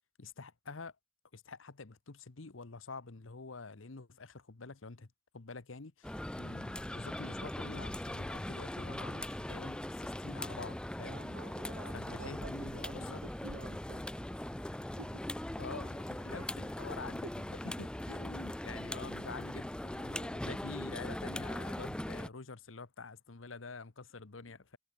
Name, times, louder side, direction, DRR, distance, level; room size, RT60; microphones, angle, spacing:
voice 1, 0.2-0.9 1.3-11.2 11.9-13.2 15.6-24.8, left 4 dB, 75° left, 1.1 m, -47 dB
sound 1, 6.0-22.3, left 1 dB, 5° left, 0.3 m, -40 dB
voice 2, 11.0-14.2 15.0-15.3 16.3-16.5 17.2-17.3, right 4 dB, 85° right, 1.0 m, -50 dB
head